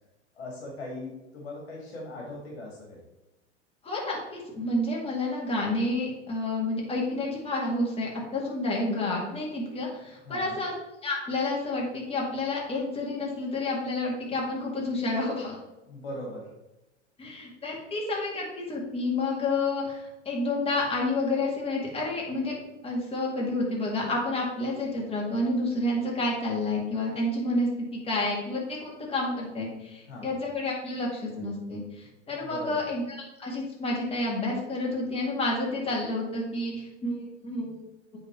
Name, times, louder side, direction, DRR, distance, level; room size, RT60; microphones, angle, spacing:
voice 1, 0.4-3.0 10.3-10.6 15.8-16.5 30.1-30.4 32.4-32.8, left 1 dB, 60° left, 0 dB, 2.0 m, -39 dB
voice 2, 3.8-10.7 11.0-15.6 17.2-22.5 22.8-33.0 33.4-37.8, left 2 dB, 15° left, -3 dB, 2.2 m, -29 dB
7.8 x 4.0 x 4.3 m, 0.98 s
figure-of-eight pair, 90°, 36 cm